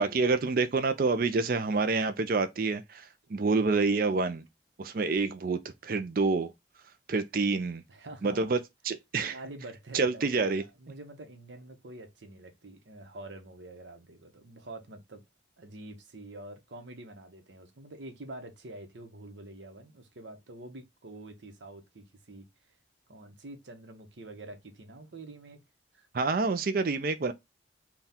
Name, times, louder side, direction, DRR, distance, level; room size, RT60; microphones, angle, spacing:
voice 1, 0.0-4.5 4.8-6.5 7.1-7.8 8.2-8.6 8.8-9.4 9.9-10.6 26.1-27.3, right 4 dB, 50° right, 0.4 m, -27 dB
voice 2, 7.9-8.5 9.2-15.2 15.6-22.5 23.1-25.6 25.9-26.1, right 2 dB, 75° right, 0.9 m, -46 dB
3.6 x 2.3 x 4.1 m
head